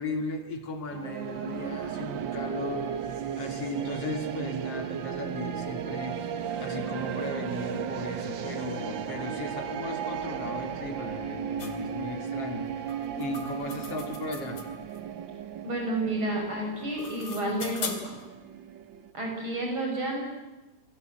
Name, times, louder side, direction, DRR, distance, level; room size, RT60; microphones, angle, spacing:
voice 1, 0.0-6.2 6.6-14.6, left 2 dB, 50° left, 5 dB, 3.4 m, -37 dB
sound 1, 0.9-19.1, right 8 dB, 60° right, 1.2 m, -35 dB
sound 2, 11.6-11.8 12.9-15.0 16.7-18.3, left 5 dB, 70° left, 3.7 m, -39 dB
voice 2, 15.6-18.2 19.1-20.2, right 1 dB, 40° right, 1 dB, 7.0 m, -30 dB
27.5 x 20.0 x 7.9 m, 1.1 s
omnidirectional pair, 3.5 m